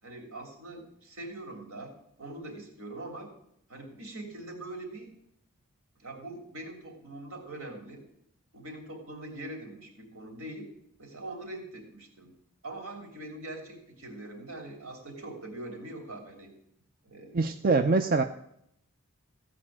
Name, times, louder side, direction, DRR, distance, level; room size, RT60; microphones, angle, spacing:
voice 1, 0.0-1.9 2.2-3.3 3.7-5.1 6.0-8.0 8.5-10.7 11.0-12.3 12.6-16.5 17.0-17.5, right 2 dB, 75° right, 3 dB, 3.3 m, -42 dB
voice 2, 17.3-18.2, right 3 dB, 40° right, 7 dB, 0.5 m, -24 dB
15.0 x 5.1 x 8.7 m, 0.74 s
head